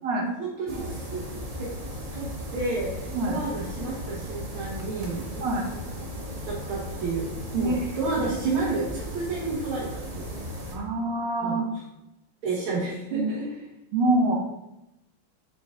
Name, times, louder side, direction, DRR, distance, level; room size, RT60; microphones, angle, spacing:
voice 1, 0.2-1.2 1.6-1.8 2.1-5.4 6.4-7.3 7.5-10.3 10.6-10.7 11.4-11.6 12.4-13.6, right 3 dB, 90° right, -5 dB, 1.9 m, -31 dB
sound 1, 0.7-10.8, equal, 50° right, 0.4 m, -36 dB
voice 2, 7.6-8.0 10.7-11.7 13.1-13.3 13.9-14.4, right 2 dB, 65° right, 0 dB, 1.7 m, -25 dB
6.3 x 4.7 x 3.7 m, 0.91 s
omnidirectional pair, 2.2 m